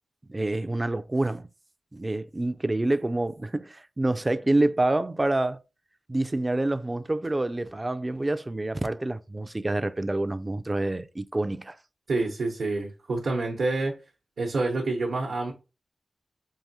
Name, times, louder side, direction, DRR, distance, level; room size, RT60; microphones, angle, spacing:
voice 1, 0.3-1.5 1.9-5.6 6.1-11.8, right 2 dB, 25° right, 0.3 m, -27 dB
voice 2, 12.1-14.0 14.4-15.5, right 3 dB, 80° right, 0.8 m, -27 dB
4.8 x 2.8 x 2.7 m
cardioid pair, 60°, 0 cm